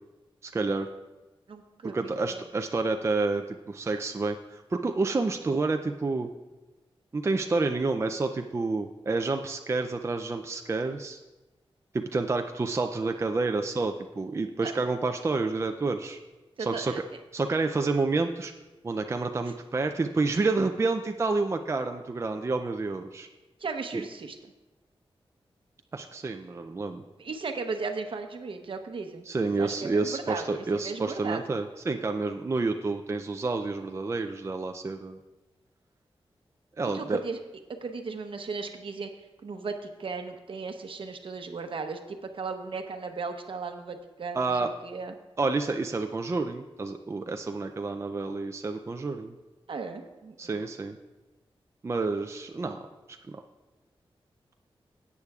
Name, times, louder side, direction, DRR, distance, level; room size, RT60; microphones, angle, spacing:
voice 1, 0.4-0.9 1.8-6.3 7.1-11.2 11.9-16.2 16.6-16.9 17.3-18.5 18.8-23.3 23.9-24.0 25.9-27.0 29.3-35.2 36.8-37.2 44.3-44.7 45.4-49.3 50.4-51.0 51.8-52.8 53.1-53.4, right 3 dB, 30° right, 5 dB, 0.4 m, -29 dB
voice 2, 1.5-2.4 14.6-14.7 16.6-17.0 23.6-24.3 27.2-31.4 36.9-37.4 37.8-39.1 39.4-44.5 44.8-45.1 49.7-50.3, right 4 dB, 65° right, 6 dB, 0.9 m, -36 dB
16.5 x 8.3 x 2.4 m, 1.1 s
wide cardioid pair, 115°, 10 cm